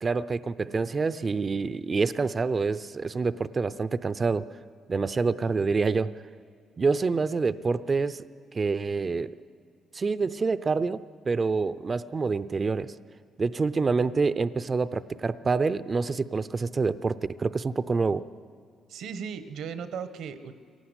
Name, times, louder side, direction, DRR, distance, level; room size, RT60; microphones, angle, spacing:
voice 1, 0.0-4.5 4.9-6.1 6.8-8.2 8.5-9.4 9.9-12.9 13.4-18.2, right 4 dB, 35° right, 15 dB, 0.6 m, -27 dB
voice 2, 18.9-20.5, right 6 dB, 80° right, 11 dB, 1.2 m, -36 dB
22.5 x 18.0 x 8.1 m, 2.3 s
cardioid pair, 90°, 0 cm